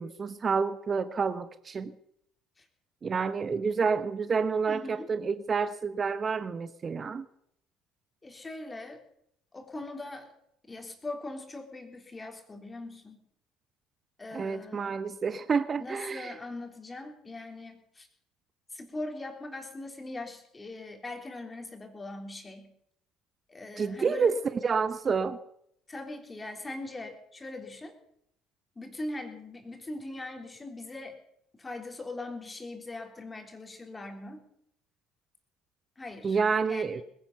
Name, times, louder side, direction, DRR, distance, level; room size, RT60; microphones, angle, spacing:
voice 1, 0.0-1.9 3.0-7.3 14.3-16.4 23.8-24.3 24.6-25.4 36.2-37.0, right 5 dB, 35° right, 13 dB, 0.9 m, -29 dB
voice 2, 4.7-5.1 8.2-9.0 9.5-10.3 10.7-13.2 14.2-15.0 15.8-18.1 18.7-22.7 23.5-24.3 25.9-28.0 28.8-31.2 31.5-34.4 36.0-36.4 36.7-37.0, left 2 dB, 20° left, 4 dB, 3.5 m, -41 dB
20.0 x 10.5 x 6.9 m, 0.74 s
hypercardioid pair, 65°, 0 cm